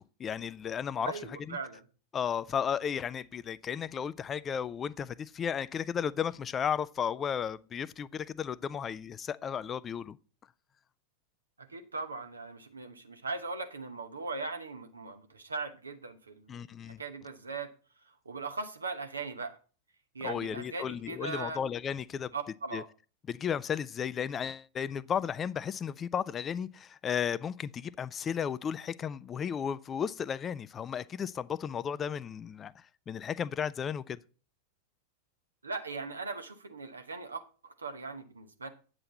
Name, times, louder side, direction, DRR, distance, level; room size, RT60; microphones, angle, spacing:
voice 1, 0.0-1.1 1.5-1.6 2.1-10.2 16.5-17.0 20.2-22.3 22.7-22.8 23.3-34.2, left 8 dB, 25° left, 0.4 m, -34 dB
voice 2, 1.0-1.8 11.7-17.7 18.2-19.6 20.1-21.6 22.3-22.9 35.6-38.7, right 4 dB, 75° right, 1.0 m, -39 dB
8.8 x 7.6 x 4.1 m
figure-of-eight pair, 90°, 0 cm